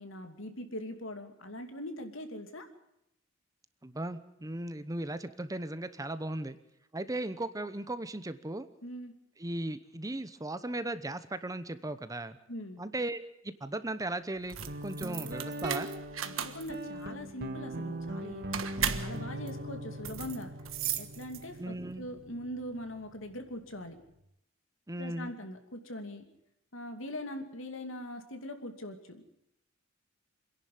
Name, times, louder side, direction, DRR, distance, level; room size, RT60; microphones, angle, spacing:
voice 1, 0.0-2.7 8.8-9.1 12.5-12.8 16.2-20.5 20.9-24.0 25.0-26.3 26.7-29.2, left 1 dB, 75° left, 6 dB, 2.8 m, -42 dB
voice 2, 3.8-6.6 6.9-8.7 9.4-12.4 12.8-13.2 13.4-15.9 21.6-22.1 24.9-25.3, right 1 dB, 15° right, 12 dB, 0.9 m, -37 dB
sound 1, 14.4-21.7, right 9 dB, 85° right, 1.5 m, -37 dB
Guitar, 14.7-24.1, right 1 dB, 55° right, 1.8 m, -41 dB
27.0 x 11.0 x 9.4 m, 0.81 s
head